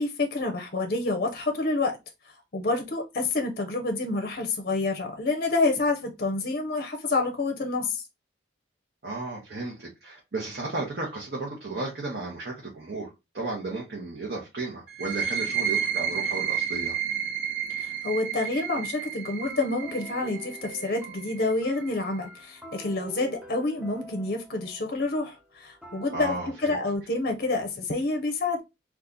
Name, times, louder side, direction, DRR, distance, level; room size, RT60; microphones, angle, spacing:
voice 1, 0.0-2.0 2.5-8.0 17.8-28.6, left 3 dB, 50° left, 0.6 m, -28 dB
voice 2, 9.0-17.0 26.1-26.8, right 3 dB, 55° right, 0.9 m, -34 dB
sound 1, 14.9-22.3, right 8 dB, 85° right, 0.9 m, -31 dB
sound 2, 19.1-27.0, right 1 dB, 5° right, 0.5 m, -46 dB
2.8 x 2.4 x 3.6 m
head